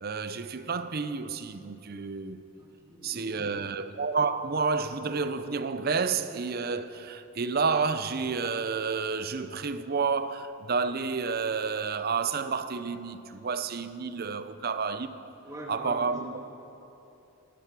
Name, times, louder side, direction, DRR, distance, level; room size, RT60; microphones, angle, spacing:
voice 1, 0.0-2.4 3.0-15.2 15.7-16.4, right 5 dB, 45° right, 0.6 m, -30 dB
voice 2, 2.6-3.5 15.4-16.4, equal, 15° right, 2.2 m, -43 dB
16.5 x 13.0 x 6.1 m
head